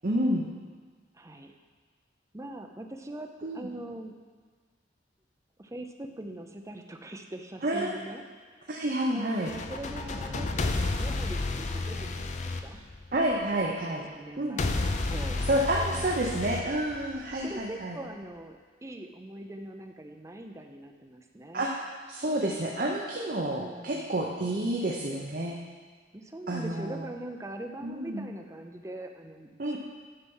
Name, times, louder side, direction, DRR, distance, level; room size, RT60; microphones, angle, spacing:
voice 1, 0.0-0.5 3.4-3.7 7.6-7.9 8.7-9.5 13.1-14.0 14.4-14.6 15.5-18.0 21.5-21.7 22.1-25.6 26.5-27.0 27.8-28.3 29.6-29.8, right 1 dB, 50° right, -1 dB, 0.8 m, -29 dB
voice 2, 1.1-1.5 2.3-4.1 5.6-8.2 8.6-12.8 13.5-16.5 17.1-21.7 23.4-24.1 26.1-29.8, right 1 dB, 15° right, 4 dB, 0.6 m, -42 dB
sound 1, 9.3-13.4 14.6-17.4, left 3 dB, 40° left, 0.5 m, -31 dB
9.7 x 5.8 x 5.4 m, 1.5 s
head